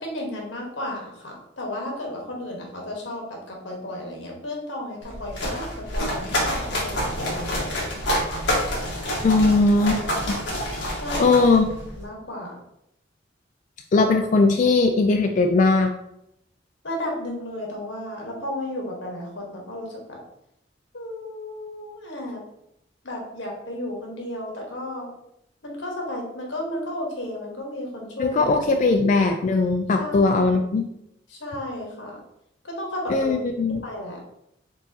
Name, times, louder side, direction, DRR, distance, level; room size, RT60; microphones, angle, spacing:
voice 1, 0.0-7.6 10.9-11.3 12.0-12.5 16.8-20.2 20.9-22.4 23.0-25.1 25.6-28.6 30.0-30.6 31.3-32.2 32.6-33.3 33.7-34.2, left 1 dB, 90° left, 0 dB, 1.4 m, -33 dB
sound 1, 5.0-12.0, equal, 70° left, 1.4 m, -27 dB
voice 2, 9.2-10.4 11.2-11.7 13.9-15.9 28.2-30.9 33.1-33.8, left 3 dB, 40° left, 4 dB, 0.3 m, -19 dB
4.5 x 4.0 x 2.8 m, 0.79 s
head